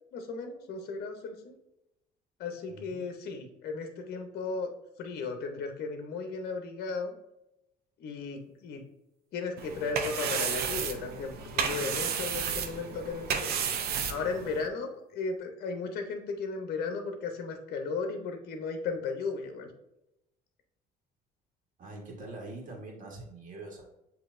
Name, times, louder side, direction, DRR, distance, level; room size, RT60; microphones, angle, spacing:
voice 1, 0.1-1.5 2.4-4.7 5.0-7.2 8.0-8.8 9.3-13.5 14.1-19.7, left 4 dB, 70° left, 5 dB, 0.8 m, -35 dB
voice 2, 2.7-3.0 21.8-23.8, right 2 dB, 50° right, 0 dB, 1.4 m, -44 dB
sound 1, 9.6-14.7, right 7 dB, 70° right, 0.6 m, -32 dB
7.4 x 2.8 x 2.6 m, 0.88 s
cardioid pair, 110°, 17 cm